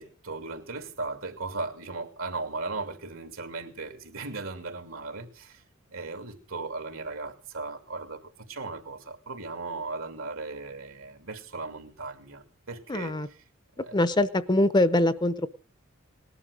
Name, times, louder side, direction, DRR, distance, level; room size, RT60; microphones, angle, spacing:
voice 1, 0.0-5.6 5.9-13.4 13.8-14.0, right 3 dB, 80° right, 7 dB, 2.7 m, -37 dB
voice 2, 12.9-13.3 13.8-15.5, left 1 dB, 20° left, 14 dB, 0.7 m, -23 dB
19.5 x 11.0 x 6.5 m, 0.42 s
head